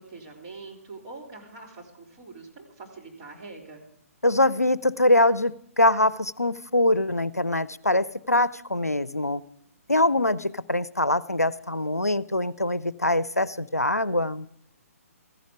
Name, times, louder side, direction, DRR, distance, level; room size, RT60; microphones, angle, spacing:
voice 1, 0.0-3.8, right 3 dB, 30° right, -2 dB, 3.6 m, -44 dB
voice 2, 4.2-9.4 9.9-14.5, left 1 dB, 90° left, 19 dB, 0.5 m, -23 dB
15.5 x 15.0 x 5.0 m, 0.68 s
figure-of-eight pair, 135°, 8 cm